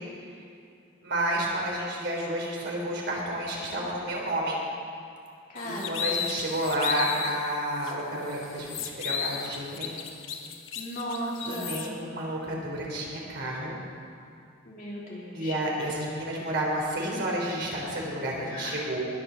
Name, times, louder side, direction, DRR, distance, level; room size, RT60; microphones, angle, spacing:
voice 1, 1.0-4.6 5.6-10.1 11.5-13.8 15.3-19.0, right 1 dB, 55° right, -3 dB, 3.6 m, -31 dB
voice 2, 5.5-6.2 10.7-11.8 14.6-15.9 18.5-18.8, equal, 40° left, -5 dB, 3.3 m, -36 dB
sound 1, 5.6-7.4 7.8-7.9 8.3-11.9, left 7 dB, 70° left, 1.1 m, -34 dB
20.5 x 7.0 x 7.4 m, 2.5 s
head